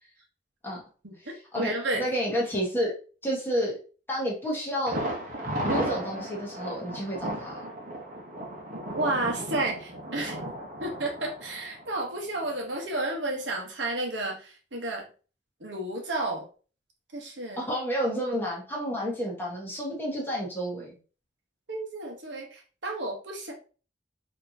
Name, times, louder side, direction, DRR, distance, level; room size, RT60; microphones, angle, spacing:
voice 1, 1.0-2.0 8.9-10.4 10.8-15.0 15.6-16.4 17.1-17.6 21.7-23.5, right 2 dB, 90° right, 0 dB, 1.2 m, -31 dB
voice 2, 2.0-2.9 3.2-3.7 4.1-5.0 5.6-7.6 17.6-21.0, equal, 10° left, -3 dB, 1.3 m, -30 dB
Thunder, 4.9-12.6 12.9-13.0 13.4-13.5, right 1 dB, 50° right, 1.1 m, -35 dB
4.2 x 3.0 x 2.8 m, 0.36 s
head